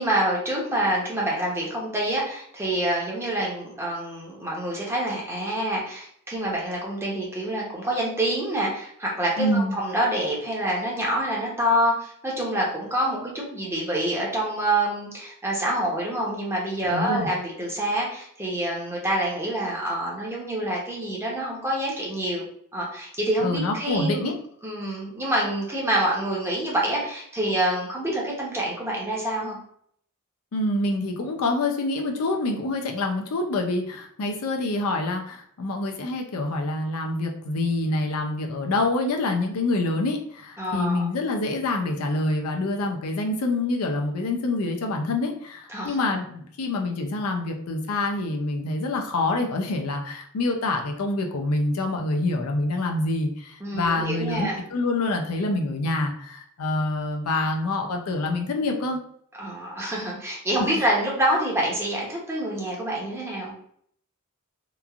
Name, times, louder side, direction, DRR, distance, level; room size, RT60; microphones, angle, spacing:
voice 1, 0.0-22.4 22.7-24.3 24.6-29.6 40.6-41.1 45.7-46.0 53.6-54.6 59.4-63.5, right 1 dB, 10° right, -4 dB, 0.7 m, -26 dB
voice 2, 9.4-9.8 16.9-17.3 23.4-24.3 30.5-59.0, left 2 dB, 75° left, 3 dB, 0.5 m, -26 dB
3.0 x 2.4 x 2.3 m, 0.65 s
head